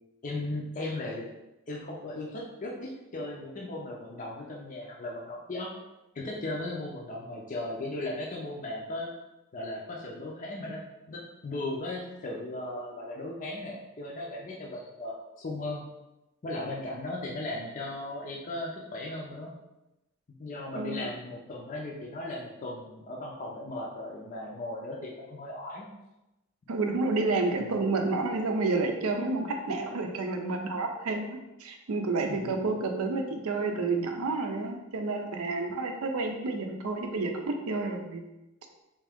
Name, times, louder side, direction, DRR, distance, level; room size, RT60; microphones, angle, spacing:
voice 1, 0.2-1.3 1.7-5.7 6.1-9.1 9.5-10.8 11.1-15.8 16.4-19.5 20.4-25.9 27.6-27.7 32.3-32.5, left 2 dB, 35° left, -2 dB, 0.5 m, -37 dB
voice 2, 20.7-21.1 26.7-38.2, right 3 dB, 80° right, 4 dB, 0.5 m, -30 dB
3.5 x 2.7 x 3.4 m, 0.96 s
head